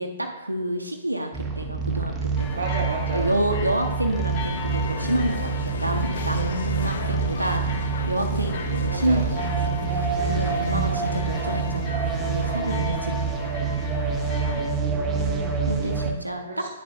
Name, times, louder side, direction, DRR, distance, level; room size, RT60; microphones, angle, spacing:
voice 1, 0.0-2.7 3.1-9.7 10.0-13.8 14.5-14.7 15.7-16.7, right 1 dB, 85° right, 4 dB, 0.6 m, -29 dB
sound 1, 1.3-16.1, right 5 dB, 15° right, 0.9 m, -27 dB
sound 2, 2.3-14.7, left 6 dB, 35° left, 1.0 m, -38 dB
voice 2, 2.5-3.3 8.9-9.3 11.1-11.5 14.8-15.5 16.4-16.6, right 3 dB, 60° right, 0 dB, 0.9 m, -33 dB
sound 3, 4.2-14.2, left 5 dB, 60° left, 0.5 m, -37 dB
9.4 x 6.9 x 2.6 m, 1.0 s
figure-of-eight pair, 115°, 0 cm